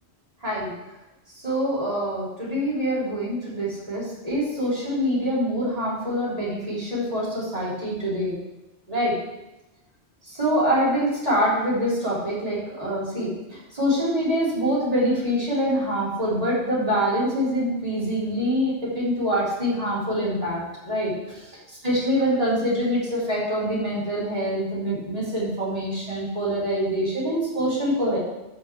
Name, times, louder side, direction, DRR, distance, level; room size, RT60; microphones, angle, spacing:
voice 1, 1.4-8.3 8.9-9.1 10.4-13.3 13.7-21.1 21.8-28.2, equal, 35° right, -9 dB, 3.8 m, -25 dB
13.0 x 6.0 x 3.4 m, 0.97 s
omnidirectional pair, 1.1 m